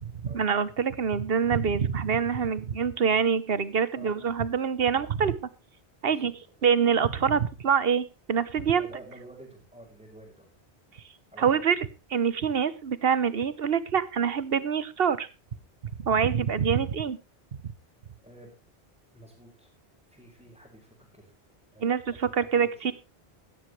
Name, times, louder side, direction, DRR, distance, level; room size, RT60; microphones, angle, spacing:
voice 1, 0.0-5.4 6.0-6.3 6.6-8.9 11.4-11.8 12.1-15.3 16.0-17.2 21.8-22.9, right 7 dB, 65° right, 16 dB, 1.2 m, -25 dB
voice 2, 3.9-4.3 6.1-6.3 8.7-10.5 11.3-11.6 18.2-18.5 19.1-19.7 20.1-21.2 21.7-22.9, right 1 dB, 5° right, -5 dB, 5.4 m, -50 dB
15.5 x 13.5 x 3.2 m, 0.29 s
omnidirectional pair, 1.1 m